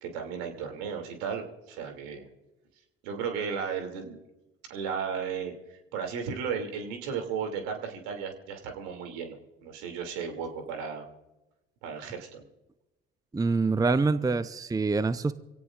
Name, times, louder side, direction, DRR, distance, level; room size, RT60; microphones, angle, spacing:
voice 1, 0.0-2.3 3.0-4.2 4.7-9.4 9.6-11.0 11.8-12.4, right 6 dB, 70° right, 4 dB, 2.8 m, -35 dB
voice 2, 13.3-15.3, right 3 dB, 10° right, 13 dB, 0.7 m, -25 dB
26.5 x 17.5 x 2.5 m, 1.0 s
hypercardioid pair, 60°, 32 cm